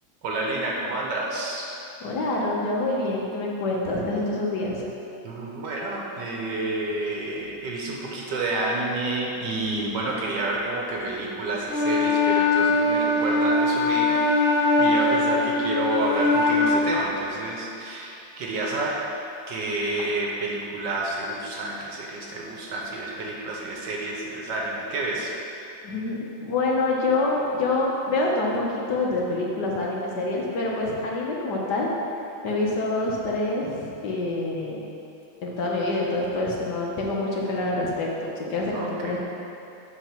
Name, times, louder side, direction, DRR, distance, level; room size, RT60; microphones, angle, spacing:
voice 1, 0.2-1.7 5.2-14.2 14.5-19.0 19.5-25.3 38.7-39.2, right 2 dB, 65° right, -2 dB, 1.4 m, -29 dB
voice 2, 2.0-4.8 25.8-31.9 32.4-34.8 35.4-38.1 38.5-39.2, left 2 dB, 65° left, -3 dB, 1.4 m, -26 dB
Wind instrument woodwind instrument, 11.7-16.8, left 2 dB, 35° left, 2.0 m, -21 dB
7.9 x 3.6 x 5.8 m, 2.8 s
omnidirectional pair, 2.1 m